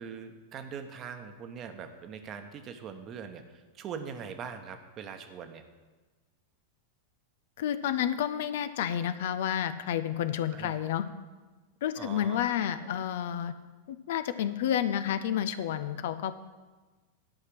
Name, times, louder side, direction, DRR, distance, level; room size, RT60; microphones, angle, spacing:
voice 1, 0.0-5.6 10.5-10.7 12.0-12.9, right 6 dB, 30° right, 7 dB, 1.1 m, -42 dB
voice 2, 7.6-11.0 11.8-13.5 13.9-16.3, left 10 dB, 55° left, 11 dB, 0.5 m, -30 dB
11.5 x 5.7 x 7.8 m, 1.3 s
figure-of-eight pair, 90°, 0 cm